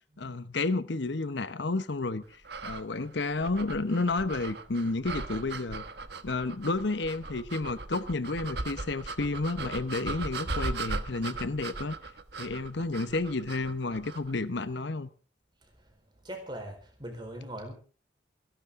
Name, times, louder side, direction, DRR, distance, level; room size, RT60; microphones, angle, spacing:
voice 1, 0.2-5.8 6.2-12.0 12.4-15.1, left 3 dB, 70° left, 0.9 m, -31 dB
sound 1, 2.4-14.3, right 3 dB, 60° right, 1.3 m, -38 dB
voice 2, 16.2-17.7, right 1 dB, 25° right, 4.4 m, -40 dB
28.0 x 11.5 x 3.7 m
head